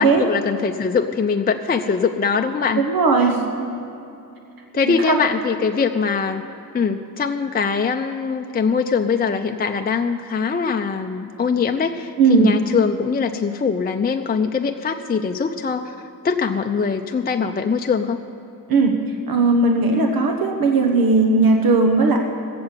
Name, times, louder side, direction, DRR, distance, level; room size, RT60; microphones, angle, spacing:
voice 1, 0.0-2.8 3.2-3.3 4.7-6.4 6.7-16.0 16.2-18.2, left 5 dB, 30° left, 5 dB, 0.4 m, -22 dB
voice 2, 2.8-3.6 4.9-5.2 12.2-12.5 18.7-19.0 19.3-22.2, right 3 dB, 85° right, 3 dB, 1.1 m, -17 dB
16.5 x 7.7 x 7.3 m, 2.8 s
wide cardioid pair, 110°, 34 cm